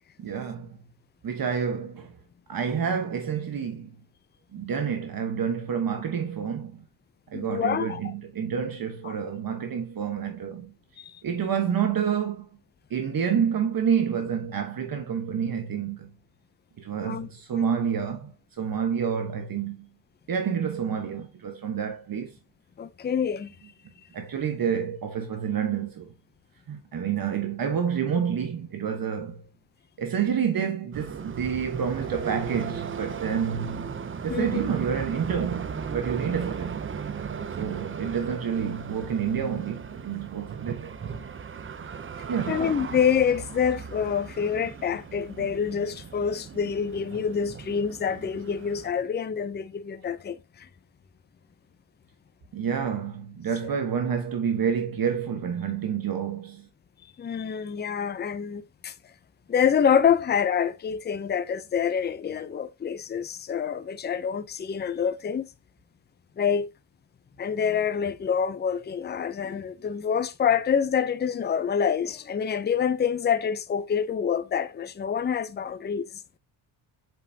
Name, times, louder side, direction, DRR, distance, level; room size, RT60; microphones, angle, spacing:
voice 1, 0.2-0.8 1.2-2.2 2.5-4.0 4.5-6.8 7.3-10.7 11.2-12.5 12.9-16.1 16.8-19.9 20.3-22.4 24.1-26.1 26.7-29.4 30.0-33.9 34.2-36.8 37.5-40.9 42.3-42.7 52.5-56.7, right 7 dB, 45° right, 1.2 m, -28 dB
voice 2, 7.3-8.1 9.1-9.2 11.0-11.2 17.0-17.7 22.8-23.5 34.3-34.6 42.5-50.7 57.2-58.9 59.5-65.5 66.4-66.7 67.4-76.1, left 7 dB, 20° left, 0.5 m, -27 dB
sound 1, 30.9-48.9, right 6 dB, 25° right, 0.6 m, -37 dB
7.6 x 5.4 x 2.8 m
cardioid pair, 110°, 47 cm